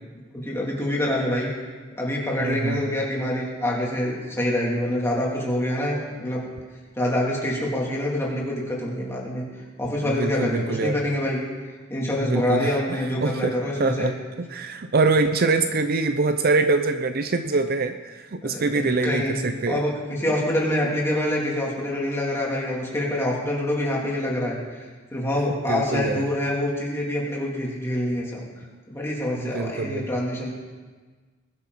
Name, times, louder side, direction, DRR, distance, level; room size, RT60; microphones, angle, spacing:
voice 1, 0.3-1.5 2.0-6.4 7.0-9.4 9.8-11.4 11.9-14.1 18.4-19.4 19.7-24.6 25.1-28.4 28.9-30.5, left 1 dB, 10° left, -4 dB, 3.2 m, -26 dB
voice 2, 2.4-3.0 10.0-11.0 12.2-12.8 13.2-14.1 14.4-19.8 25.7-26.3 29.4-30.1, right 3 dB, 45° right, 8 dB, 0.7 m, -24 dB
21.5 x 12.0 x 4.2 m, 1.4 s
head